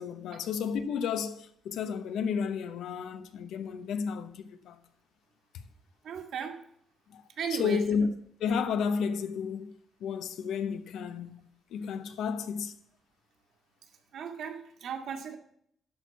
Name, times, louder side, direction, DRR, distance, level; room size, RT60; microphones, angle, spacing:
voice 1, 0.0-4.8 7.1-7.2 7.5-8.1 8.4-9.7 10.0-12.8, left 6 dB, 85° left, 1.0 m, -32 dB
voice 2, 6.0-6.6 7.4-7.8 14.1-15.4, right 7 dB, 65° right, 1.7 m, -36 dB
12.0 x 4.7 x 6.8 m
cardioid pair, 150°, 0 cm